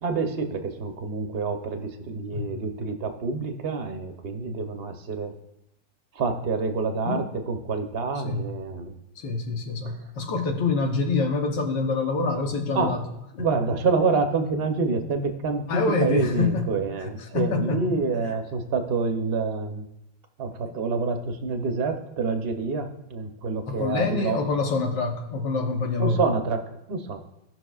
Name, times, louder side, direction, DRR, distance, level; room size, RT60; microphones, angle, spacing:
voice 1, 0.0-5.3 6.1-9.0 9.9-10.0 12.7-13.0 13.4-19.9 20.4-24.4 26.0-27.2, right 4 dB, 45° right, 6 dB, 0.8 m, -27 dB
voice 2, 9.2-13.1 13.4-13.5 15.7-16.7 17.0-18.0 23.7-26.2, left 3 dB, 75° left, 4 dB, 1.7 m, -26 dB
18.0 x 6.1 x 2.4 m, 0.85 s
omnidirectional pair, 2.0 m